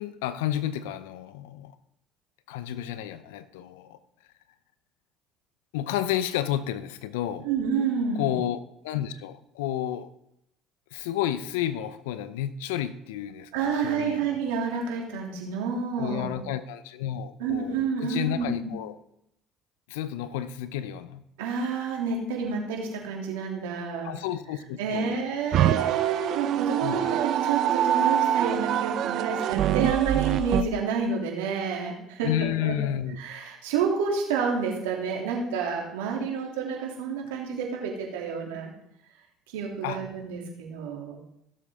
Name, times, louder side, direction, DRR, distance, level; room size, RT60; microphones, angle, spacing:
voice 1, 0.0-1.7 2.5-4.0 5.7-7.5 8.2-10.1 10.9-13.5 13.8-14.4 16.0-17.8 18.0-18.9 19.9-21.2 24.0-25.1 26.8-27.2 32.2-33.2 39.8-40.0, left 11 dB, 85° left, 13 dB, 0.7 m, -31 dB
voice 2, 7.4-8.3 13.5-16.3 17.4-18.7 21.4-24.1 24.8-32.7 33.2-38.7 39.5-41.2, right 5 dB, 85° right, -1 dB, 2.8 m, -29 dB
sound 1, 25.5-30.6, right 10 dB, 60° right, 0.6 m, -25 dB
16.5 x 7.6 x 3.7 m, 0.78 s
hypercardioid pair, 75°, 0 cm